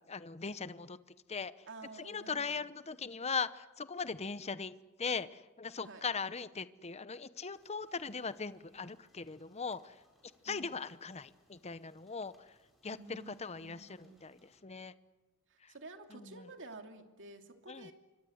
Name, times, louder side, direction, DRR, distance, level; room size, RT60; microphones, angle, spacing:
voice 1, 0.1-1.0 1.3-1.7 2.0-4.7 5.0-10.0 10.4-12.5 12.8-14.9 15.6-15.7 16.1-16.5 17.7-17.9, left 5 dB, 30° left, 0.8 m, -40 dB
voice 2, 1.7-2.7 5.8-6.1 10.5-10.7 12.9-14.3 15.5-17.9, right 3 dB, 60° right, 2.7 m, -51 dB
sound 1, 7.5-14.6, equal, ahead, 7.7 m, -71 dB
27.0 x 24.5 x 8.0 m
head